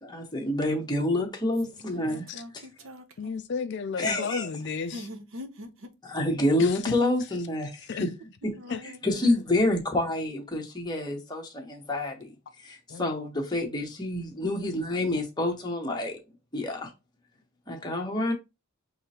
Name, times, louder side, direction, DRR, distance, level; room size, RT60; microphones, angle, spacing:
voice 1, 0.0-2.3 4.0-4.5 6.0-8.1 8.4-8.5 9.0-12.3 12.6-16.2 16.5-16.9 17.7-18.3, left 1 dB, 20° left, 1.1 m, -28 dB
voice 2, 1.8-3.3 4.9-5.9 8.4-9.0, left 1 dB, 60° right, 0.8 m, -43 dB
voice 3, 3.2-5.1 6.6-7.0 7.9-8.1 8.7-8.8 12.9-13.1, left 5 dB, 55° left, 0.4 m, -33 dB
5.4 x 3.2 x 2.8 m
head